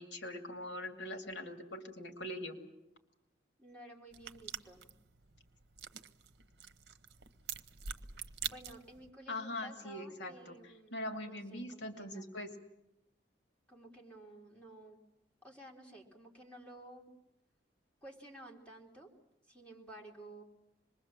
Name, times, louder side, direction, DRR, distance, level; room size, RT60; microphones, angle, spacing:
voice 1, 0.0-2.6 9.3-10.6 10.9-12.5, left 1 dB, 75° left, 4 dB, 2.5 m, -42 dB
voice 2, 3.6-4.9 8.4-11.0 11.3-12.2 13.7-15.0 15.4-17.1 18.0-19.1 19.5-20.4, right 1 dB, 5° left, -2 dB, 3.7 m, -53 dB
sound 1, 4.1-9.1, right 8 dB, 65° right, 1.0 m, -46 dB
26.0 x 21.5 x 7.4 m, 0.87 s
head